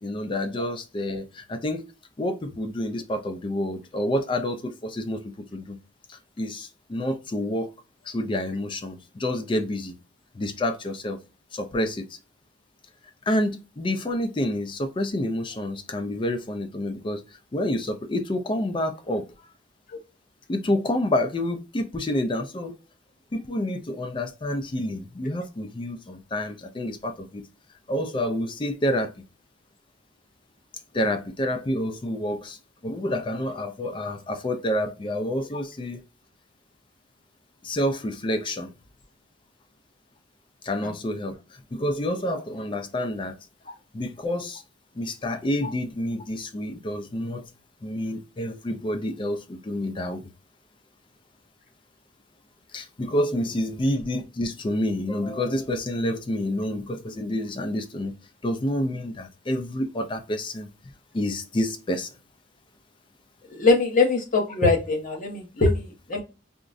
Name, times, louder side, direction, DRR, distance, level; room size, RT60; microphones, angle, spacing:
voice 1, 0.0-1.9 2.2-5.2 5.5-5.8 6.1-7.7 8.0-10.0 10.3-11.2 11.5-12.2 13.3-17.2 17.5-19.3 20.5-22.8 23.3-27.5 27.9-29.1 30.9-36.0 37.6-38.7 40.6-43.4 43.9-44.6 45.0-47.5 47.8-50.3 52.7-58.1 58.4-60.7 61.1-62.1, left 1 dB, 25° left, 0.3 m, -28 dB
voice 2, 63.5-66.2, left 3 dB, 40° left, 0.7 m, -22 dB
3.6 x 2.0 x 2.4 m
head